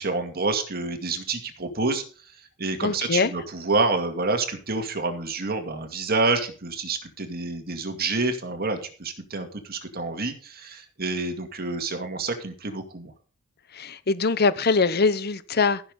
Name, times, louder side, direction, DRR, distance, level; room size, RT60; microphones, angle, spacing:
voice 1, 0.0-2.0 2.6-13.1, right 3 dB, 50° right, 2.2 m, -28 dB
voice 2, 2.8-3.3 13.7-15.8, left 4 dB, 50° left, 0.9 m, -22 dB
15.0 x 6.7 x 5.4 m
head